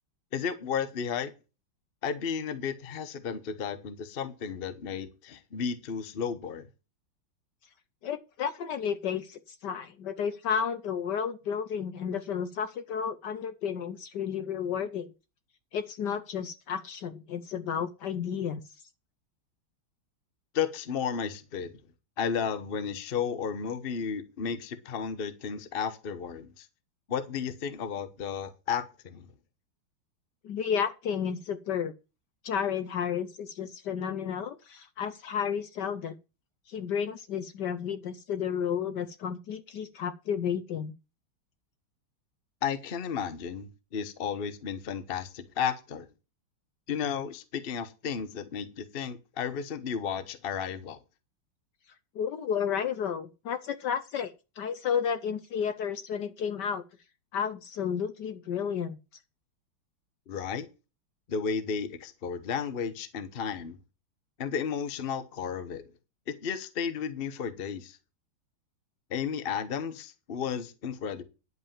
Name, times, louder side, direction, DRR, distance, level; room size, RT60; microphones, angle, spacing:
voice 1, 0.3-1.3 2.0-6.7 20.5-21.8 22.2-26.7 27.1-29.3 42.6-46.1 46.9-51.0 60.3-60.7 61.3-63.8 64.4-65.8 66.3-68.0 69.1-71.2, left 7 dB, 40° left, 0.9 m, -33 dB
voice 2, 8.0-15.1 15.7-18.6 30.4-31.9 32.4-36.1 36.7-40.9 52.1-56.8 57.3-59.0, left 7 dB, 65° left, 1.2 m, -32 dB
11.0 x 5.5 x 7.3 m
omnidirectional pair, 2.2 m